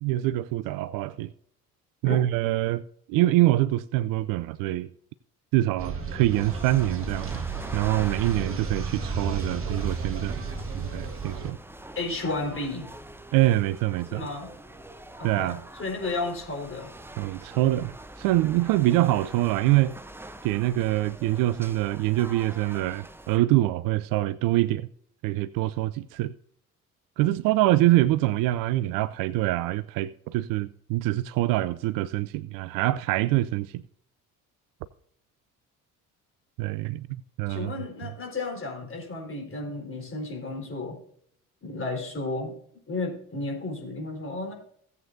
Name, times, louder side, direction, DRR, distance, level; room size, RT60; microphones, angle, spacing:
voice 1, 0.0-1.3 2.0-2.8 3.1-4.9 5.5-7.4 7.7-10.4 10.7-11.6 13.3-14.2 15.2-15.6 17.2-19.9 20.4-24.9 25.2-26.3 27.2-33.8 36.6-37.1 37.4-37.7, right 16 dB, 50° right, 0.5 m, -25 dB
sound 1, 5.8-11.5, right 4 dB, 30° right, 1.6 m, -33 dB
sound 2, 6.3-23.4, right 1 dB, 5° right, 0.7 m, -44 dB
voice 2, 12.0-12.9 14.1-14.5 15.2-16.9 37.5-41.0 41.6-42.5 42.9-44.5, left 2 dB, 30° left, 4.3 m, -33 dB
17.0 x 8.1 x 2.6 m
figure-of-eight pair, 50°, 44 cm